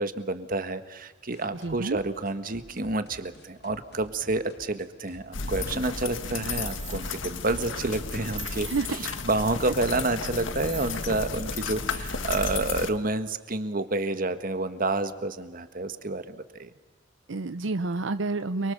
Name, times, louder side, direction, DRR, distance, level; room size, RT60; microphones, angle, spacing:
voice 1, 0.0-8.7 9.0-16.7, right 2 dB, 50° right, 10 dB, 1.6 m, -29 dB
sound 1, 1.3-6.8, left 1 dB, 60° left, 2.6 m, -53 dB
voice 2, 1.5-2.0 8.6-9.0 17.3-18.7, right 3 dB, 80° right, 12 dB, 0.7 m, -29 dB
sound 2, 5.3-12.9, left 4 dB, 85° left, 1.7 m, -33 dB
sound 3, 6.5-7.2 8.4-9.2 10.6-11.3 12.3-12.9, right 6 dB, 25° right, 3.0 m, -44 dB
29.5 x 23.5 x 6.9 m, 1.3 s
head